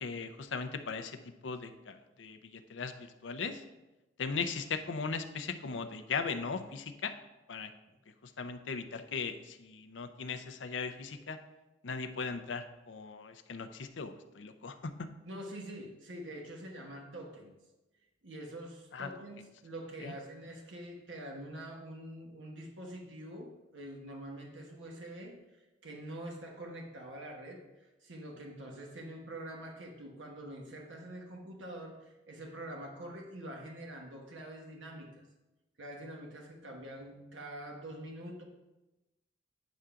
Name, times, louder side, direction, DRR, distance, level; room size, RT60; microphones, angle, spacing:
voice 1, 0.0-3.6 4.2-7.1 7.5-7.7 8.2-11.4 11.8-14.9 18.9-19.1 20.0-20.1, left 5 dB, 80° left, 8 dB, 0.6 m, -38 dB
voice 2, 15.3-17.5 18.2-35.2 35.8-38.4, right 1 dB, 90° right, 0 dB, 1.2 m, -45 dB
9.3 x 3.7 x 5.7 m, 1.0 s
head